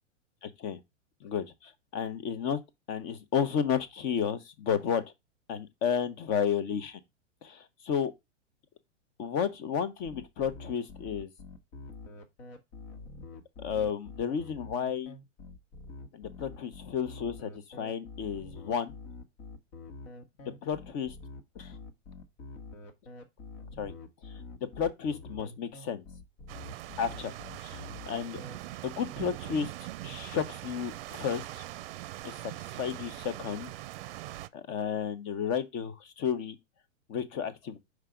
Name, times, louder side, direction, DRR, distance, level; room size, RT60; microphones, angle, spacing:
voice 1, 0.4-0.8 1.2-2.6 2.9-5.0 5.5-7.0 7.4-8.1 9.2-11.3 13.2-13.3 13.6-15.1 16.1-18.9 20.4-21.1 21.5-21.7 23.8-23.9 24.8-26.0 27.0-28.4 28.8-31.6 32.2-33.7 34.5-36.6 37.1-37.8, left 7 dB, 35° left, 1.0 m, -32 dB
sound 1, 10.0-28.6, left 3 dB, 55° left, 1.6 m, -46 dB
sound 2, 26.5-34.5, right 15 dB, 50° right, 0.6 m, -42 dB
5.5 x 4.8 x 3.8 m
hypercardioid pair, 120°, 37 cm